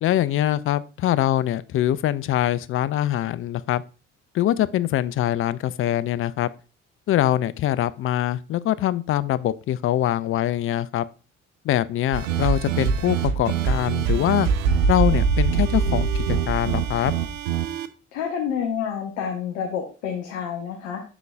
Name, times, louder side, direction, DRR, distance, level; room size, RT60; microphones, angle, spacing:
voice 1, 0.0-3.8 4.3-6.5 7.1-11.0 11.6-14.5 14.9-17.1, left 12 dB, 35° left, 0.4 m, -23 dB
sound 1, 12.1-17.9, right 6 dB, 80° right, 0.5 m, -23 dB
voice 2, 18.1-21.0, left 7 dB, 75° left, 1.0 m, -28 dB
11.0 x 3.8 x 2.3 m
figure-of-eight pair, 45°, 38 cm